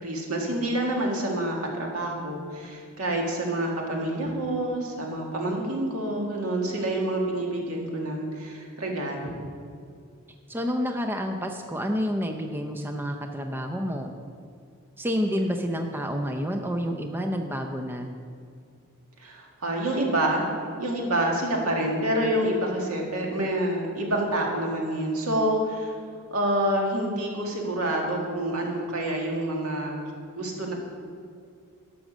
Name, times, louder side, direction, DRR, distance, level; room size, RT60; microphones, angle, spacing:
voice 1, 0.0-9.5 19.2-20.5 20.8-26.0 26.3-30.7, right 1 dB, 80° right, -1 dB, 2.1 m, -27 dB
voice 2, 10.5-14.1 15.0-18.1, equal, 10° right, 4 dB, 0.5 m, -29 dB
12.0 x 6.2 x 6.3 m, 2.3 s
head